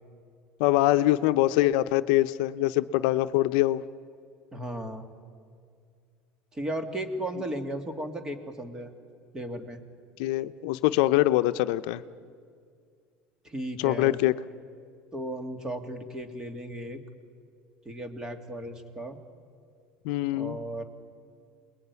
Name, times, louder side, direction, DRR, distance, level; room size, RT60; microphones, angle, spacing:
voice 1, 0.6-3.8 10.2-12.0 13.8-14.3 20.0-20.6, left 16 dB, 75° left, 12 dB, 0.8 m, -24 dB
voice 2, 4.5-5.0 6.5-8.9 9.3-9.8 13.4-14.2 15.1-17.0 17.9-19.2 20.3-20.8, right 1 dB, 15° right, 7 dB, 2.3 m, -35 dB
28.5 x 21.0 x 9.6 m, 2.2 s
cardioid pair, 160°, 4 cm